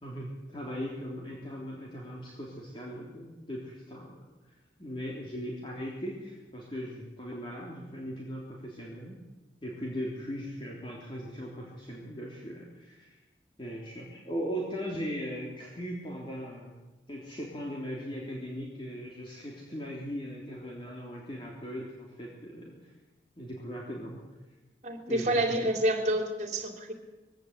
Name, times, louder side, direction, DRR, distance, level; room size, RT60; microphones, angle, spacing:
voice 1, 0.0-4.3 4.8-9.2 9.6-13.2 13.6-16.8 17.1-22.9 23.4-24.2 25.1-25.6, equal, 30° left, -3 dB, 3.5 m, -39 dB
voice 2, 24.8-26.9, right 1 dB, 40° right, 4 dB, 3.4 m, -28 dB
22.0 x 16.5 x 8.2 m, 1.2 s
head